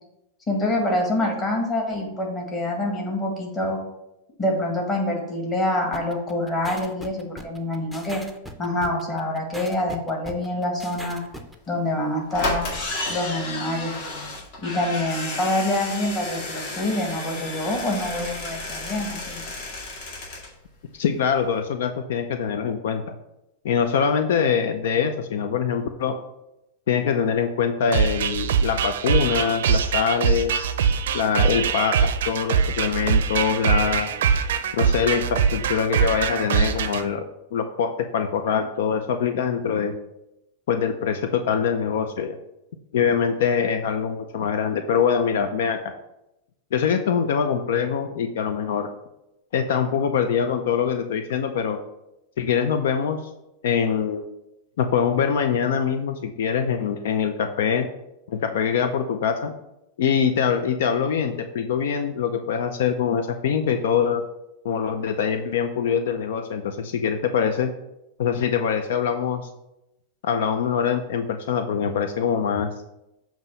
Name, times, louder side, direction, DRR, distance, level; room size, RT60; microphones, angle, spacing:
voice 1, 0.5-3.8 4.4-8.2 8.6-11.2 11.7-12.7 13.1-14.3 14.6-19.4, left 1 dB, 25° left, 0 dB, 1.7 m, -26 dB
sound 1, 5.9-11.5, equal, ahead, 0.6 m, -39 dB
sound 2, 11.7-11.8 12.3-20.5 20.8-20.9 21.1-21.2, left 2 dB, 50° left, 1.8 m, -32 dB
voice 2, 20.9-23.2 23.6-26.2 26.9-30.5 31.1-34.1 34.7-37.2 37.5-39.9 40.7-42.4 42.9-45.8 46.7-48.9 49.5-51.8 52.4-53.2 53.6-54.3 54.8-57.9 58.3-59.5 60.0-64.2 64.6-67.7 68.2-69.5 70.2-72.7, left 7 dB, 75° left, 8 dB, 0.5 m, -23 dB
sound 3, 27.9-37.0, right 7 dB, 85° right, 0.5 m, -23 dB
7.4 x 3.0 x 5.4 m, 0.89 s
supercardioid pair, 145°, 0 cm